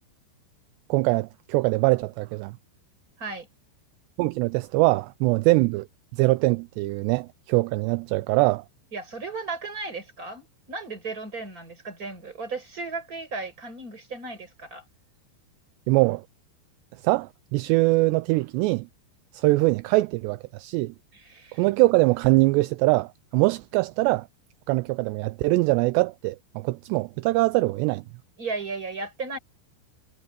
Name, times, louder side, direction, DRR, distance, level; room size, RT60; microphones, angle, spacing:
voice 1, 0.9-2.5 4.2-5.9 6.1-8.6 15.9-16.2 17.0-18.9 19.3-20.9 21.6-24.3 24.7-28.0, right 22 dB, 85° right, 2.6 m, -23 dB
voice 2, 8.9-14.8 21.1-21.7 28.4-29.4, right 3 dB, 20° right, 5.7 m, -35 dB
omnidirectional pair, 5.1 m